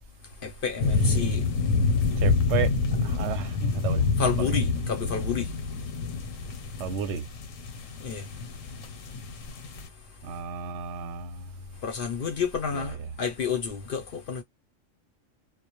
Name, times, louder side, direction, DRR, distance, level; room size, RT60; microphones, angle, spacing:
voice 1, 0.4-1.5 4.2-5.5 8.0-8.3 11.8-14.4, left 6 dB, 55° left, 0.6 m, -30 dB
sound 1, 0.8-9.9, left 4 dB, 85° left, 1.0 m, -27 dB
voice 2, 2.2-2.7 3.0-4.0 4.4-4.6 6.8-7.2 10.2-11.5 12.7-12.9, right 6 dB, 70° right, 0.8 m, -32 dB
2.1 x 2.0 x 2.9 m
omnidirectional pair, 1.3 m